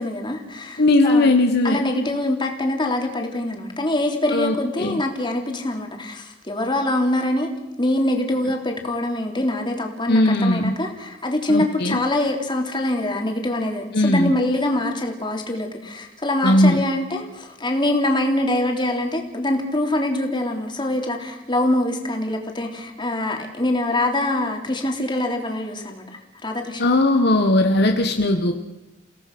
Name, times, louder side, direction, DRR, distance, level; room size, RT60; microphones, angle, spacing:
voice 1, 0.0-1.4 1.6-7.5 7.8-26.0 26.4-26.8, left 1 dB, 25° left, 2 dB, 3.3 m, -24 dB
voice 2, 0.8-1.8 4.3-5.0 10.1-10.7 11.5-12.0 13.9-14.3 16.4-16.8 26.8-28.5, left 1 dB, 60° left, 4 dB, 1.5 m, -18 dB
29.5 x 17.5 x 6.2 m, 0.99 s
head